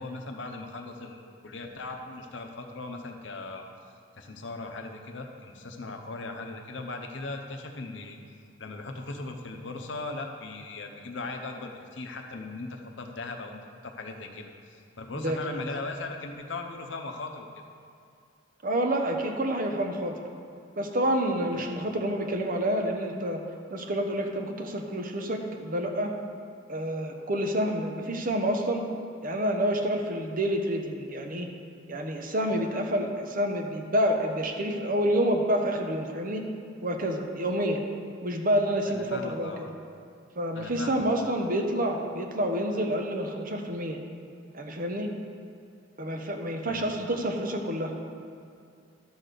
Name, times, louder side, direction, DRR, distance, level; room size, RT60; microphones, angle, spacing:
voice 1, 0.0-3.6 4.2-8.2 8.6-17.5 21.5-21.6 38.9-39.7 40.5-41.2 46.7-46.8, left 3 dB, 75° left, 3 dB, 0.9 m, -38 dB
voice 2, 18.6-20.3 20.8-23.4 23.7-26.1 26.7-28.8 29.2-31.5 31.9-36.4 36.8-37.8 38.2-39.7 40.4-44.0 44.5-45.1 46.0-47.9, right 1 dB, 50° right, 3 dB, 1.0 m, -28 dB
12.0 x 4.1 x 6.7 m, 2.3 s
head